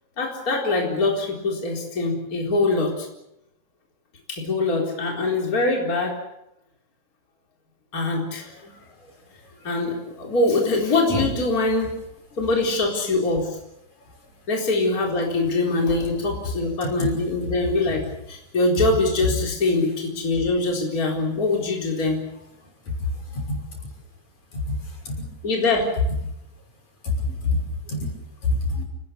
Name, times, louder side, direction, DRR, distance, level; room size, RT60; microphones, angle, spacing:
voice 1, 0.2-3.1 4.3-6.2 7.9-8.7 9.6-12.0 12.4-13.6 14.5-22.3 25.4-26.0, left 2 dB, 25° left, 0 dB, 4.4 m, -23 dB
voice 2, 27.0-27.6 27.9-28.1 28.4-28.8, left 2 dB, 70° left, 2 dB, 7.4 m, -25 dB
29.5 x 20.0 x 6.9 m, 0.83 s
omnidirectional pair, 3.5 m